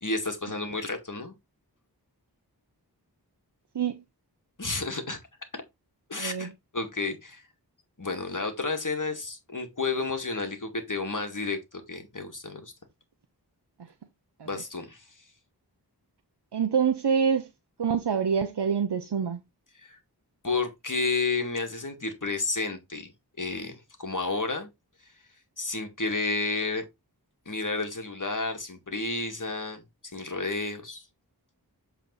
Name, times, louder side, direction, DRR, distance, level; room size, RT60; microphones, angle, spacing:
voice 1, 0.0-1.3 4.6-5.2 5.5-5.6 6.1-7.4 8.0-12.7 14.4-15.1 19.7-20.0 20.4-23.1 23.4-24.7 25.0-25.1 25.6-26.8 27.5-29.8 30.1-31.0, left 3 dB, 50° left, 2.1 m, -31 dB
voice 2, 6.2-6.5 14.4-14.6 16.5-17.5 17.8-19.4, right 6 dB, 90° right, 0.8 m, -26 dB
7.9 x 4.2 x 4.0 m
wide cardioid pair, 45°, 39 cm